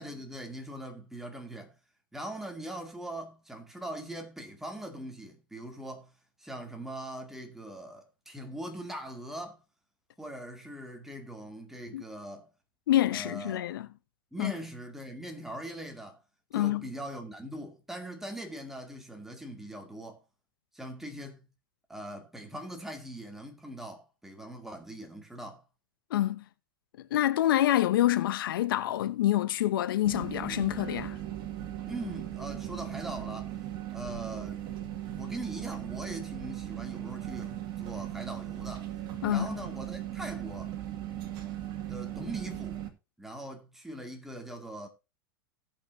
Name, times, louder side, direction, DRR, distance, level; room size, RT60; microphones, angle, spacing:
voice 1, 0.0-1.7 2.1-6.1 6.4-9.6 10.2-12.5 13.1-13.7 14.3-16.2 16.5-20.2 20.7-21.5 21.9-25.6 31.9-33.5 33.9-34.6 35.1-38.9 39.3-40.7 41.9-42.8 43.2-44.9, right 1 dB, 5° right, 2.2 m, -41 dB
voice 2, 12.9-13.9 14.4-14.5 16.5-16.9 26.1-26.4 27.1-31.2 39.2-39.5, left 13 dB, 75° left, 0.9 m, -27 dB
sound 1, 30.0-42.9, right 12 dB, 45° right, 2.0 m, -38 dB
17.5 x 5.9 x 2.7 m
hypercardioid pair, 120°, 12 cm